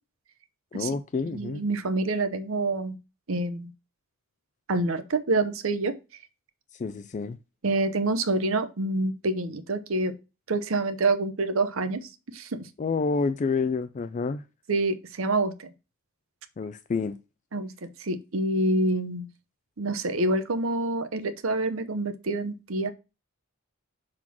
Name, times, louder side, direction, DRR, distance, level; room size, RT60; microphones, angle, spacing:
voice 1, 0.7-1.6 6.8-7.4 12.8-14.4 16.6-17.2, left 4 dB, 35° left, 0.3 m, -28 dB
voice 2, 1.3-3.0 3.3-3.7 4.7-5.9 7.6-10.1 10.5-12.6 14.7-15.7 17.5-17.7 18.0-19.3 19.8-22.9, right 2 dB, 65° right, 0.8 m, -27 dB
6.1 x 3.8 x 6.0 m
head